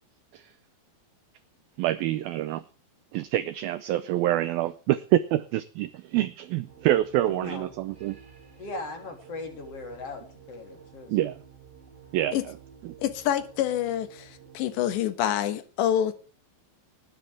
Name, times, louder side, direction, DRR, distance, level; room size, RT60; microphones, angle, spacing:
voice 1, 1.8-2.6 3.1-8.2 11.1-11.4 12.1-12.4 12.8-12.9, right 14 dB, 90° right, 2.1 m, -26 dB
sound 1, 6.7-15.1, right 6 dB, 20° right, 1.6 m, -52 dB
voice 2, 7.3-7.7 8.6-11.2, left 3 dB, 35° left, 3.8 m, -39 dB
voice 3, 13.0-16.1, left 11 dB, 80° left, 3.5 m, -27 dB
19.5 x 10.0 x 3.5 m
omnidirectional pair, 5.1 m